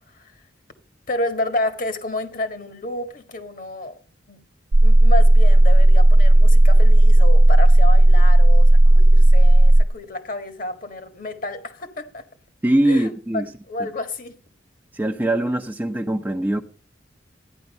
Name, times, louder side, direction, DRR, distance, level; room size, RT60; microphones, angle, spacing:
voice 1, 1.1-4.0 4.3-4.4 4.8-12.2 12.8-13.1 13.7-14.4, left 2 dB, 45° left, 1.7 m, -30 dB
sound 1, 4.7-9.8, right 1 dB, 70° right, 0.7 m, -11 dB
voice 2, 12.6-13.5 13.8-13.9 14.9-16.6, right 1 dB, 10° right, 0.7 m, -22 dB
13.5 x 10.0 x 5.4 m
head